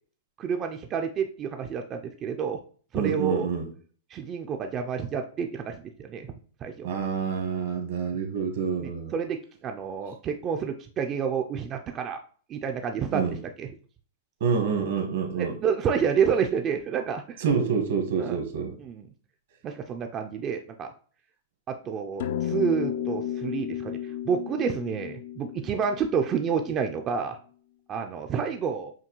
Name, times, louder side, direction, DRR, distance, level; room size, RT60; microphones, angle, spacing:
voice 1, 0.4-2.6 2.9-3.5 4.1-6.3 6.6-6.9 8.8-12.2 12.5-13.7 15.4-17.4 18.2-18.4 18.8-19.0 19.6-20.9 21.7-24.0 24.3-27.4 27.9-28.9, right 6 dB, 25° right, 5 dB, 0.3 m, -29 dB
voice 2, 2.9-3.7 6.8-9.1 13.1-13.4 14.4-15.6 17.4-18.8, right 6 dB, 70° right, 5 dB, 1.2 m, -27 dB
sound 1, 22.2-26.9, left 10 dB, 70° left, 0.4 m, -33 dB
5.7 x 2.3 x 3.0 m, 0.43 s
supercardioid pair, 145°, 0 cm